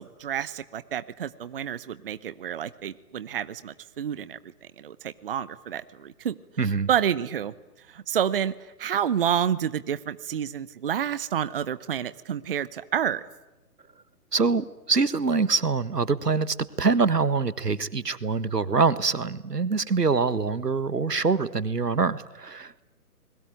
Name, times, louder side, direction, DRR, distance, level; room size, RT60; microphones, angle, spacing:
voice 1, 0.0-4.4 4.8-6.3 6.9-7.5 7.9-8.5 8.8-13.2, right 9 dB, 35° right, 15 dB, 0.9 m, -29 dB
voice 2, 6.6-6.9 14.3-22.8, right 4 dB, 85° right, 16 dB, 1.7 m, -24 dB
30.0 x 21.5 x 9.2 m, 1.0 s
figure-of-eight pair, 140°, 46 cm